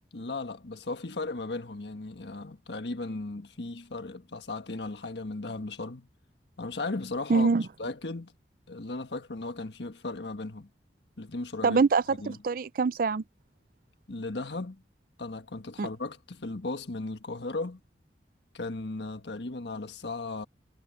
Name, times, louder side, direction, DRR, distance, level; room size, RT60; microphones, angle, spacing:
voice 1, 0.1-6.1 6.6-7.5 7.8-8.3 8.7-10.7 11.2-11.8 12.2-12.4 14.1-14.8 15.2-17.8 18.5-20.5, left 2 dB, 75° left, 1.5 m, -36 dB
voice 2, 7.3-7.6 11.6-13.2 15.8-15.9, right 4 dB, 50° right, 0.4 m, -24 dB
head